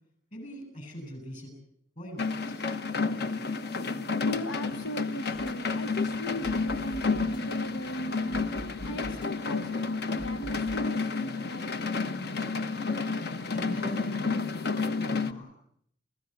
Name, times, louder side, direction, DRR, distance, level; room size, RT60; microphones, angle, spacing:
voice 1, 0.3-1.5 2.0-2.6 13.5-15.6, equal, 45° left, 6 dB, 7.9 m, -41 dB
sound 1, 2.2-15.3, left 4 dB, 60° left, 1.1 m, -31 dB
voice 2, 4.2-8.4 8.8-12.0, equal, 85° left, 8 dB, 1.0 m, -38 dB
sound 2, 5.3-10.9, equal, 25° left, 1.5 m, -46 dB
29.0 x 15.5 x 8.2 m, 0.70 s
head